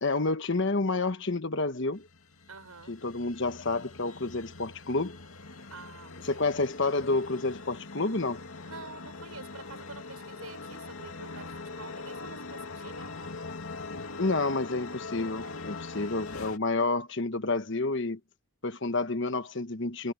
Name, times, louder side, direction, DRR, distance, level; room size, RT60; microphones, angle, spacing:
voice 1, 0.0-2.1 2.9-5.2 6.3-8.4 14.2-18.2 18.6-20.1, left 3 dB, 55° left, 1.3 m, -29 dB
sound 1, 2.0-16.6, left 3 dB, 75° left, 2.6 m, -42 dB
voice 2, 2.5-2.9 5.7-6.4 8.6-13.1, right 4 dB, 85° right, 6.5 m, -48 dB
head